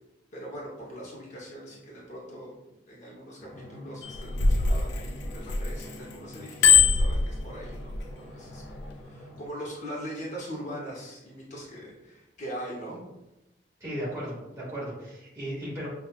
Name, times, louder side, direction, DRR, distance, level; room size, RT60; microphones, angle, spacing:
voice 1, 0.3-2.5 2.9-13.0, equal, 40° left, -5 dB, 0.7 m, -41 dB
Drum, 3.4-9.5, left 1 dB, ahead, 0.7 m, -46 dB
Bicycle bell, 4.0-5.9 6.3-8.0 8.6-8.8, left 5 dB, 65° left, 0.3 m, -22 dB
voice 2, 13.8-15.9, equal, 15° right, -8 dB, 1.5 m, -35 dB
5.7 x 2.3 x 2.2 m, 0.95 s
head